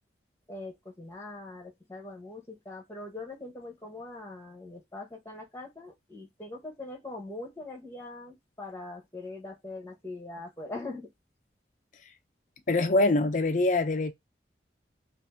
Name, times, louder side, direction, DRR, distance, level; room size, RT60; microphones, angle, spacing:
voice 1, 0.5-11.1, left 2 dB, 15° left, 0.9 m, -42 dB
voice 2, 12.7-14.1, left 2 dB, 45° left, 0.4 m, -24 dB
2.7 x 2.6 x 3.3 m
head